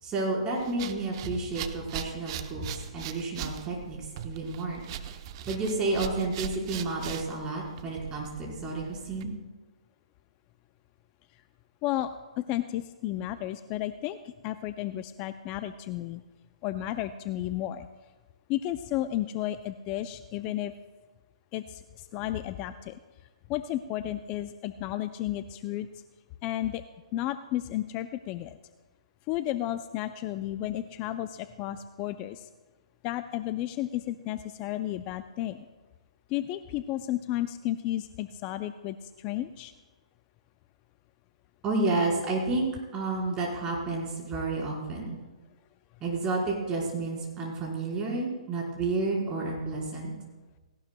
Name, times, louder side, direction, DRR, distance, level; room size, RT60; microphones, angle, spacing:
voice 1, 0.0-4.0 4.2-4.8 5.5-9.3 41.6-42.7 42.9-45.2 46.0-50.1, right 3 dB, 20° right, -3 dB, 4.4 m, -30 dB
sound 1, 0.6-9.2, right 9 dB, 40° right, 0.8 m, -40 dB
voice 2, 11.8-16.2 16.6-17.9 18.5-20.7 21.5-23.0 23.5-25.9 26.4-26.8 27.1-28.6 29.3-32.5 33.0-35.6 36.3-39.7, left 13 dB, 30° left, 11 dB, 0.4 m, -33 dB
18.0 x 17.5 x 2.3 m, 1.2 s
hypercardioid pair, 135°, 4 cm